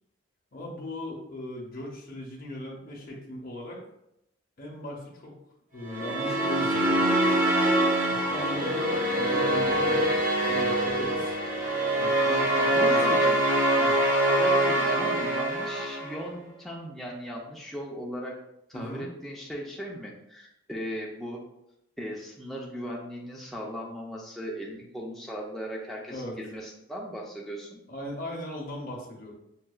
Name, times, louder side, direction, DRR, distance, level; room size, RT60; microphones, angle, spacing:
voice 1, 0.5-3.8 4.6-5.4 5.7-7.4 8.1-11.4 12.0-13.0 13.8-14.0 18.7-19.0 26.1-26.4 27.9-29.3, left 1 dB, 45° left, -2 dB, 0.6 m, -38 dB
sound 1, 5.8-16.2, right 1 dB, 40° right, 0.8 m, -24 dB
voice 2, 12.7-13.4 14.3-18.4 18.7-21.4 22.0-27.8, equal, ahead, -3 dB, 0.4 m, -37 dB
5.4 x 2.2 x 2.3 m, 0.82 s
head